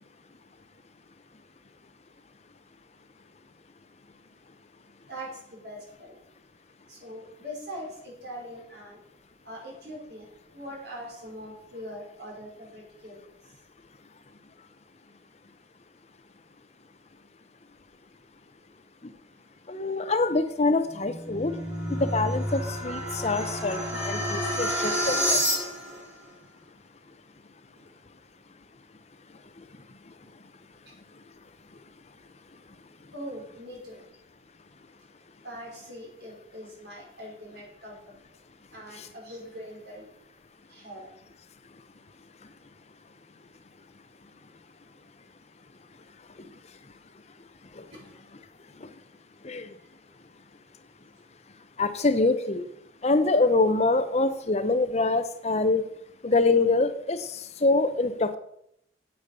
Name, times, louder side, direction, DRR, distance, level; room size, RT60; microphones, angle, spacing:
voice 1, 5.1-6.2 6.9-9.0 9.4-10.3 10.5-13.2 27.7-27.8 33.1-34.0 35.4-38.0 38.7-40.1 40.7-41.1 47.9-48.0, equal, 60° right, -2 dB, 5.0 m, -42 dB
voice 2, 19.7-21.5 21.9-25.4 39.0-39.1 47.8-47.9 48.8-48.9 49.4-49.7 51.8-52.6 53.0-55.8 56.2-58.4, left 3 dB, 35° left, 10 dB, 0.7 m, -25 dB
sound 1, 20.8-26.0, equal, 5° right, 3.7 m, -29 dB
8.9 x 8.2 x 6.7 m, 0.76 s
head